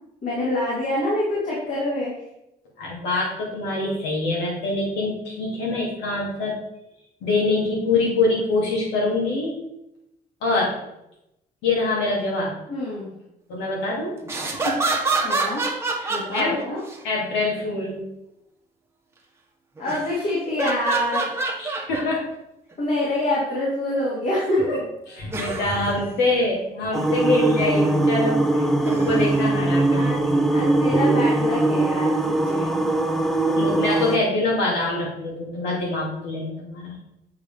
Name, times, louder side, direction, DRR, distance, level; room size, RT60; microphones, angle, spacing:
voice 1, 0.2-2.2 12.7-13.1 15.2-15.6 16.1-16.8 19.8-21.3 22.8-24.8 27.1-27.6 29.9-30.2 30.5-32.9, left 1 dB, 50° left, -7 dB, 2.6 m, -26 dB
voice 2, 2.8-6.6 7.2-9.6 10.4-10.8 11.6-12.5 13.5-14.2 14.5-14.8 16.0-16.5 17.0-18.1 21.6-22.3 25.2-30.5 31.0-31.1 33.5-36.9, left 2 dB, 90° left, -4 dB, 2.8 m, -25 dB
sound 1, 14.2-17.0 19.8-20.2 20.6-22.1 22.7-22.8 25.3-26.0 28.8-29.5 30.6-30.7, right 3 dB, 15° right, 1.1 m, -27 dB
sound 2, 26.9-34.2, right 2 dB, ahead, 0.6 m, -21 dB
8.2 x 4.8 x 3.6 m, 0.85 s
cardioid pair, 120°, 17 cm